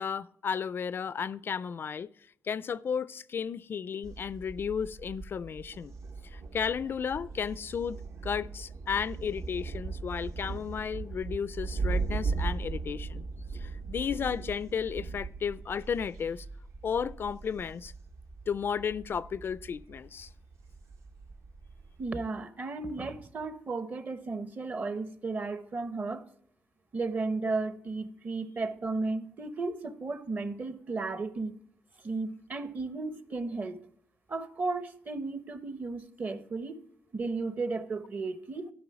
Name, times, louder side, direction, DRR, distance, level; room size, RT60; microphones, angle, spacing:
voice 1, 0.0-2.1 2.4-5.9 6.2-8.0 8.2-13.3 13.5-16.5 16.8-17.9 18.5-20.3, left 7 dB, 45° left, 0.3 m, -33 dB
Thunder, 4.0-22.1, right 4 dB, 65° right, 1.2 m, -38 dB
voice 2, 22.0-26.2 26.9-31.6 32.0-33.8 34.3-36.8 37.1-38.7, right 3 dB, 35° right, 0.9 m, -34 dB
13.0 x 5.4 x 5.7 m
cardioid pair, 125°, 5 cm